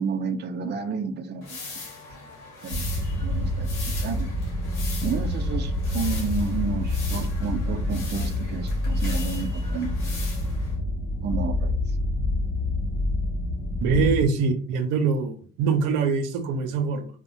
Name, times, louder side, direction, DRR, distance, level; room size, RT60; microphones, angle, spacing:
voice 1, 0.0-1.6 2.6-2.8 3.2-4.3 5.0-9.9 11.2-11.7, right 5 dB, 35° right, 7 dB, 0.4 m, -31 dB
sound 1, 1.4-10.8, left 3 dB, 80° left, 1.3 m, -40 dB
sound 2, 2.7-14.3, left 1 dB, 50° left, 0.7 m, -27 dB
voice 2, 13.8-17.1, right 5 dB, 90° right, 7 dB, 0.5 m, -24 dB
2.8 x 2.0 x 2.6 m, 0.42 s
supercardioid pair, 70°, 30 cm